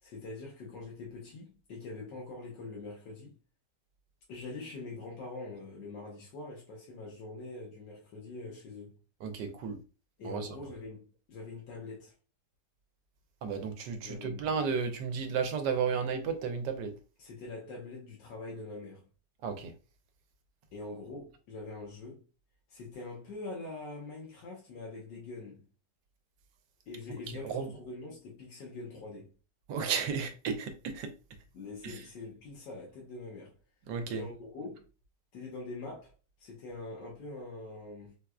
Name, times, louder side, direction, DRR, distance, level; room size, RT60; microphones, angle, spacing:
voice 1, 0.0-3.3 4.3-9.0 10.2-12.1 14.0-14.5 17.2-19.1 20.7-22.2 22.7-25.6 26.9-29.3 31.5-33.5 34.1-34.8 35.3-36.1 36.4-38.2, left 3 dB, 85° left, 1.5 m, -44 dB
voice 2, 9.2-9.8 10.2-10.5 13.4-16.9 19.4-19.7 27.3-27.7 29.7-31.1 31.8-32.0 33.9-34.2, right 6 dB, 90° right, 1.3 m, -33 dB
4.5 x 2.4 x 2.2 m
omnidirectional pair, 1.8 m